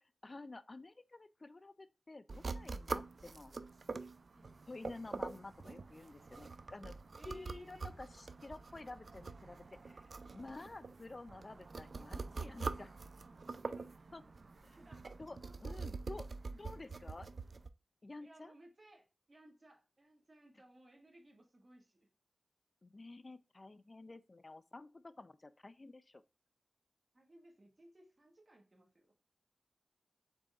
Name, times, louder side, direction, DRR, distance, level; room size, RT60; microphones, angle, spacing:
voice 1, 0.0-3.5 4.7-7.0 7.2-13.0 13.6-13.7 14.1-14.2 14.6-14.8 15.2-17.3 18.0-18.5 22.8-26.2, left 2 dB, 40° left, 0.4 m, -51 dB
sound 1, 2.3-17.7, right 4 dB, 60° right, 0.4 m, -45 dB
voice 2, 7.2-7.9 10.6-10.8 13.6-14.0 14.8-15.1 15.4-15.9 18.2-22.1 27.1-29.1, right 1 dB, 40° right, 1.7 m, -62 dB
5.3 x 4.1 x 2.4 m
cardioid pair, 60°, 0 cm